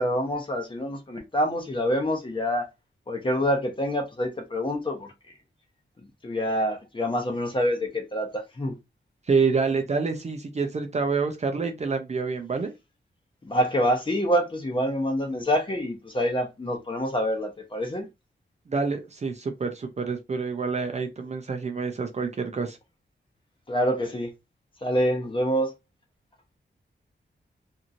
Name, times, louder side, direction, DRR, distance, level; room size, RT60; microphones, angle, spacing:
voice 1, 0.0-2.7 3.1-5.1 6.2-8.7 13.4-18.1 23.7-24.3 24.8-25.7, equal, 25° left, 0.7 m, -26 dB
voice 2, 9.3-12.7 18.7-22.8, right 4 dB, 35° right, 0.4 m, -27 dB
2.9 x 2.6 x 2.5 m
wide cardioid pair, 155°, 19 cm